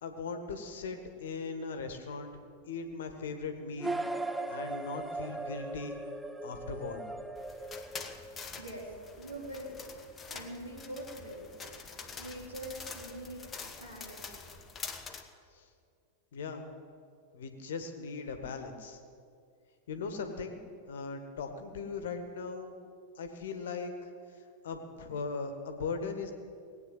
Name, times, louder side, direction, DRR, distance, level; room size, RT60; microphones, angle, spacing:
voice 1, 0.0-2.3 2.6-6.0 6.4-7.0 15.5-15.7 16.3-16.7 17.3-19.0 19.9-20.6 20.8-22.7 23.1-24.1 24.6-26.3, left 4 dB, 60° left, 7 dB, 1.6 m, -39 dB
sound 1, 3.8-8.6, right 2 dB, 5° right, 0.6 m, -38 dB
sound 2, 7.4-15.2, left 5 dB, 20° left, 1.2 m, -46 dB
voice 2, 8.6-9.8 10.3-11.5 12.2-14.4, right 1 dB, 80° right, -3 dB, 4.2 m, -44 dB
19.0 x 9.0 x 7.6 m, 2.3 s
figure-of-eight pair, 90°, 0 cm